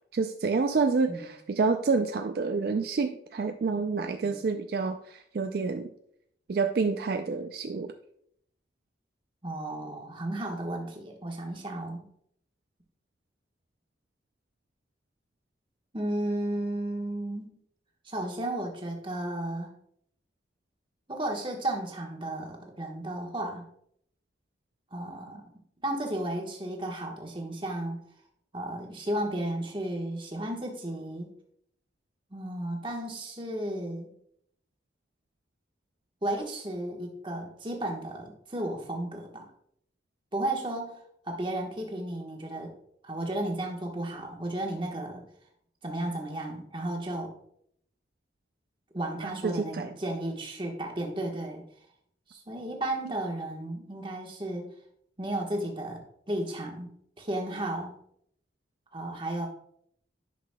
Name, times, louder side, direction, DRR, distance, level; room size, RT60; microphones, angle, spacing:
voice 1, 0.1-5.9 6.5-7.9 49.2-49.9, right 4 dB, 55° right, 7 dB, 0.4 m, -28 dB
voice 2, 9.4-12.0 15.9-17.5 18.0-19.7 21.1-23.6 24.9-25.4 25.8-28.0 28.5-31.3 32.3-34.1 36.2-39.5 40.3-42.7 43.0-45.2 45.8-47.3 48.9-51.6 52.3-54.7 55.2-56.0 56.3-56.9 57.2-57.9 58.9-59.5, right 1 dB, 25° right, 1 dB, 1.2 m, -33 dB
10.5 x 5.9 x 2.2 m, 0.69 s
head